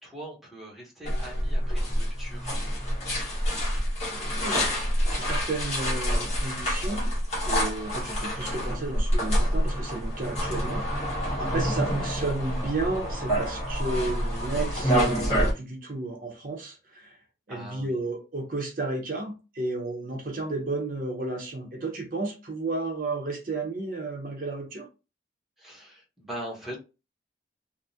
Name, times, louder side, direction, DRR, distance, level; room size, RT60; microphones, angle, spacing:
voice 1, 0.0-2.6 11.5-12.1 17.5-18.0 25.6-26.8, right 1 dB, ahead, 0.9 m, -41 dB
sound 1, 1.0-15.5, equal, 40° left, 1.3 m, -27 dB
voice 2, 4.4-4.7 5.2-7.1 7.4-17.1 17.5-24.9, right 2 dB, 50° right, 0.7 m, -33 dB
3.4 x 2.1 x 2.7 m
head